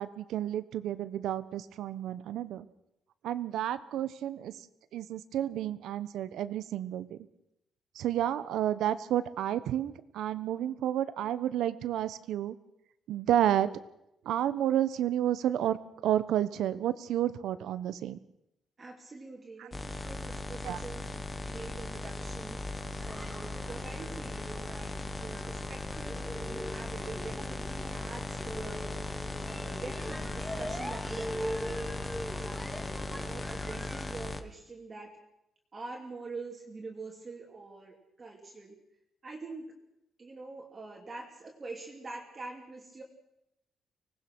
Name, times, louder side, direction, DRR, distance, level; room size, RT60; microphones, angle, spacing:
voice 1, 0.0-2.7 3.2-4.5 4.9-7.2 7.9-12.5 13.1-13.7 14.2-15.8 16.0-18.2 19.6-19.7 20.6-20.8, right 11 dB, 80° right, 14 dB, 1.1 m, -31 dB
voice 2, 18.8-21.0 21.3-22.6 23.0-28.9 29.5-31.9 32.3-35.1 35.7-38.8 39.2-39.7 40.2-43.0, right 3 dB, 25° right, -1 dB, 2.8 m, -45 dB
sound 1, 19.7-34.4, left 2 dB, 20° left, 1.2 m, -38 dB
sound 2, 22.2-34.1, equal, ahead, 3.0 m, -42 dB
25.0 x 19.0 x 6.2 m, 0.84 s
cardioid pair, 155°, 0 cm